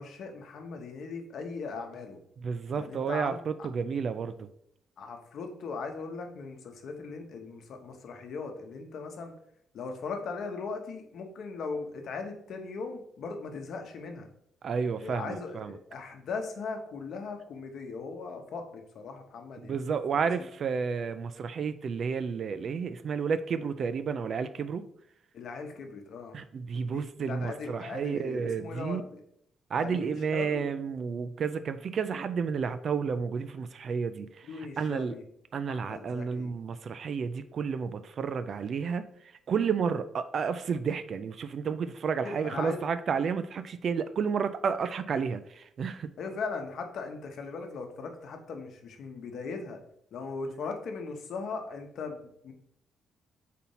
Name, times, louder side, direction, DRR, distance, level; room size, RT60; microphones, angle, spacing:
voice 1, 0.0-2.2 2.7-3.4 5.0-9.3 9.7-14.3 15.0-20.2 25.3-26.4 26.9-29.2 29.8-30.6 34.5-35.2 35.7-36.5 42.2-42.8 46.2-49.8 50.1-52.5, left 4 dB, 55° left, 0.9 m, -39 dB
voice 2, 2.4-4.5 14.6-15.7 19.6-24.8 26.3-29.0 29.7-34.5 34.8-35.1 35.5-39.1 39.5-46.1, right 6 dB, 40° right, 0.3 m, -31 dB
4.2 x 4.1 x 5.4 m
cardioid pair, 170°, 0 cm